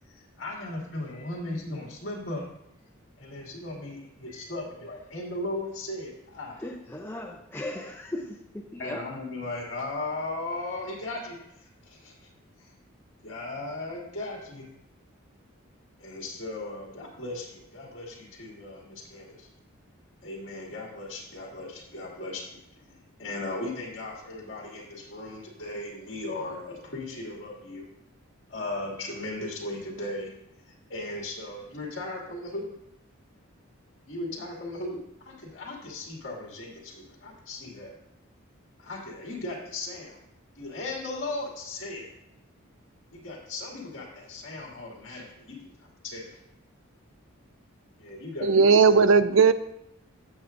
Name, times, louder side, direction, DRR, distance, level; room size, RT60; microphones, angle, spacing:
voice 1, 0.0-2.4 3.2-6.6 8.8-12.3 12.6-12.7 13.2-14.7 16.0-19.5 20.2-27.9 28.5-30.3 30.6-32.7 34.1-37.9 38.8-40.2 40.6-42.1 43.1-46.4 48.0-49.0, left 2 dB, 60° left, -2 dB, 2.3 m, -37 dB
voice 2, 6.6-9.1, left 1 dB, 10° left, 1 dB, 0.5 m, -37 dB
voice 3, 48.4-49.5, right 5 dB, 65° right, 13 dB, 0.4 m, -17 dB
14.5 x 7.0 x 2.6 m, 0.80 s
head